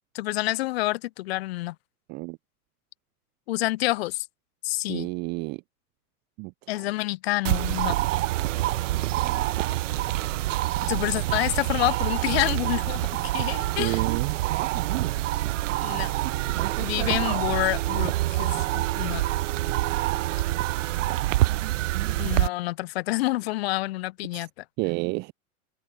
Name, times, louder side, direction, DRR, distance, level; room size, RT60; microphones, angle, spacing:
voice 1, 0.1-1.8 3.5-4.3 4.6-5.1 6.7-8.0 10.8-13.1 13.3-14.0 15.8-16.1 16.8-19.2 22.2-24.6, left 19 dB, 45° left, 0.5 m, -28 dB
voice 2, 4.9-5.6 6.4-6.9 13.8-14.4 24.3-24.5 24.8-25.3, right 27 dB, 25° right, 0.5 m, -30 dB
sound 1, 7.4-22.5, right 16 dB, 55° right, 1.0 m, -26 dB
open air
figure-of-eight pair, 100°, 46 cm